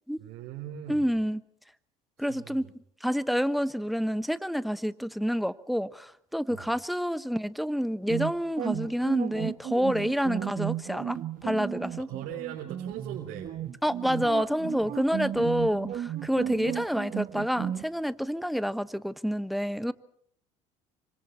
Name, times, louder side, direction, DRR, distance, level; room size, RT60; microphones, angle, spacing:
voice 1, 0.2-1.1 2.2-2.7 6.5-6.7 12.0-13.5 16.5-16.6, right 10 dB, 65° right, 3.4 m, -40 dB
voice 2, 0.9-1.4 2.2-2.7 3.0-12.1 13.8-19.9, equal, ahead, 1.2 m, -28 dB
sound 1, 8.1-17.8, right 11 dB, 50° right, 1.8 m, -34 dB
27.0 x 25.5 x 4.4 m
hypercardioid pair, 70°, 18 cm